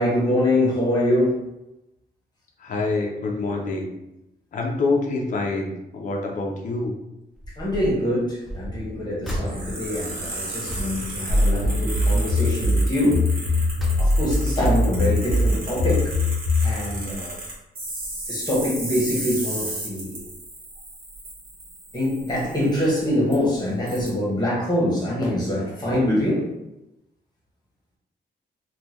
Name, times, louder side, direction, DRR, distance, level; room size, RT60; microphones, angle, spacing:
voice 1, 0.0-1.4 7.6-13.4 14.0-16.1 16.6-17.3 18.3-20.2 21.9-26.5, left 1 dB, 25° left, -5 dB, 1.1 m, -24 dB
voice 2, 2.6-3.9 4.5-7.0, left 3 dB, 45° left, 1 dB, 0.5 m, -26 dB
sound 1, 7.3-8.0 8.4-12.1 12.5-12.8 13.3-14.5 15.0-16.0 16.7-16.8 17.1-17.2, equal, ahead, 0.6 m, -36 dB
sound 2, 9.4-22.8 23.3-23.4 23.9-24.1, right 2 dB, 55° right, 1.2 m, -35 dB
sound 3, 11.3-16.8, left 1 dB, 85° right, 0.9 m, -21 dB
3.6 x 2.3 x 3.0 m, 0.91 s
wide cardioid pair, 170°, 18 cm